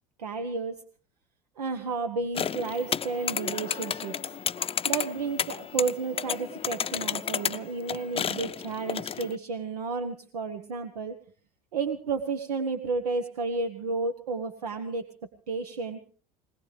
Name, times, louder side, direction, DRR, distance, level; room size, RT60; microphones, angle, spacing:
voice 1, 0.2-0.8 1.6-4.1 4.8-11.2 11.7-15.1 15.5-16.0, right 4 dB, 85° right, 5 dB, 1.3 m, -32 dB
sound 1, 2.3-9.4, left 8 dB, 30° left, 0.7 m, -32 dB
20.5 x 20.5 x 3.4 m, 0.43 s
hypercardioid pair, 70°, 20 cm